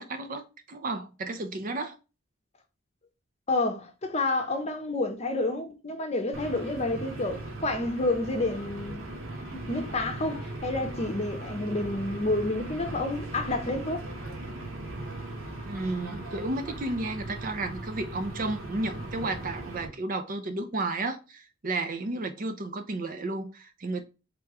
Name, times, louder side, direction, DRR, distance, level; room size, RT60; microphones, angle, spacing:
voice 1, 0.0-2.0 15.7-24.0, right 2 dB, 40° right, 0.5 m, -32 dB
voice 2, 3.5-9.0 9.5-14.0, left 2 dB, 30° left, 0.7 m, -29 dB
sound 1, 6.3-19.9, right 2 dB, 70° right, 1.2 m, -38 dB
3.4 x 3.0 x 4.6 m
head